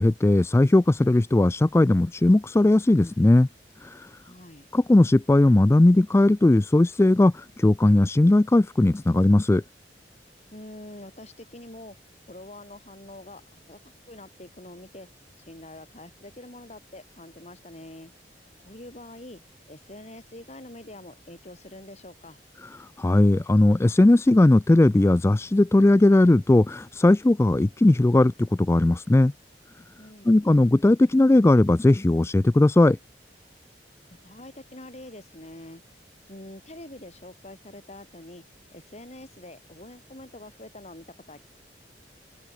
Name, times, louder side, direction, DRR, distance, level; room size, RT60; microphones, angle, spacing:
voice 1, 0.0-3.5 3.8-4.1 4.7-9.6 23.0-29.3 30.3-33.0, left 2 dB, 15° left, 0.3 m, -18 dB
voice 2, 4.2-4.7 10.5-12.0 12.3-13.8 14.1-15.1 15.5-18.1 18.6-19.4 19.7-22.4 30.0-30.4 34.2-35.8 36.3-38.4 38.7-41.4, left 1 dB, 40° left, 5.9 m, -45 dB
open air
head